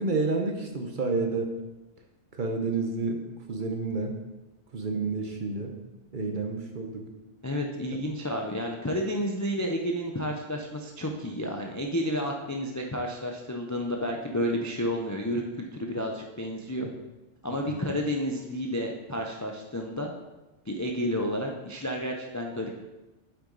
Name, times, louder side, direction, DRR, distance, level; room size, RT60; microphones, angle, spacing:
voice 1, 0.0-1.5 2.3-3.2 3.5-4.2 4.7-5.8 6.1-7.0 16.8-16.9 17.7-17.8, right 3 dB, 45° right, 3 dB, 1.0 m, -29 dB
voice 2, 7.4-16.9 17.4-20.1 20.7-22.8, equal, 20° left, 1 dB, 0.4 m, -31 dB
8.3 x 5.9 x 3.9 m, 1.0 s
omnidirectional pair, 1.2 m